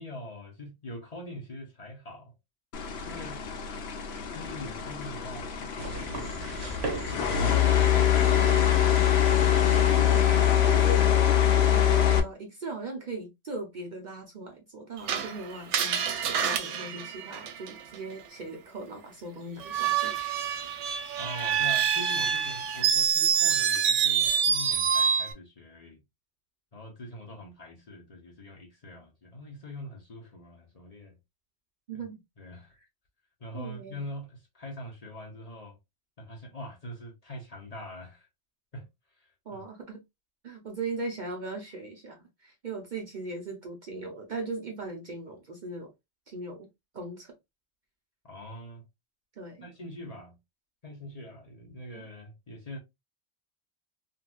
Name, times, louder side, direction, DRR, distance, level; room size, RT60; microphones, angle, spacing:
voice 1, 0.0-2.4 3.0-3.4 4.3-8.4 21.2-26.0 26.7-31.1 31.9-32.0 32.4-32.7 33.4-35.8 36.2-38.3 38.7-38.8 39.1-39.6 48.2-48.8 49.6-50.4 50.8-52.8, left 1 dB, 40° left, 0.8 m, -43 dB
sound 1, 2.7-12.2, left 10 dB, 70° left, 0.8 m, -24 dB
sound 2, 5.8-11.2, right 3 dB, 65° right, 1.0 m, -39 dB
voice 2, 9.7-11.0 11.7-20.4 31.9-32.2 33.5-34.0 39.5-40.0 40.4-45.9 46.3-46.7 46.9-47.3 49.4-49.7 51.9-52.0, right 3 dB, 50° right, 0.7 m, -39 dB
Screech, 15.1-18.0 19.6-25.3, right 7 dB, 85° right, 0.9 m, -26 dB
3.0 x 2.7 x 2.3 m
omnidirectional pair, 1.2 m